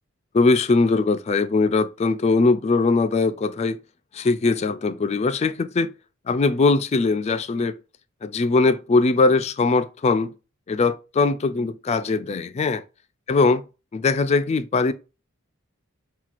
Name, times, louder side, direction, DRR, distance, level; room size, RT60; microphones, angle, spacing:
voice 1, 0.3-3.8 4.1-5.9 6.3-7.8 8.2-10.3 10.7-12.8 13.3-13.6 13.9-14.9, left 3 dB, 30° left, 0.3 m, -21 dB
5.8 x 2.3 x 2.4 m
head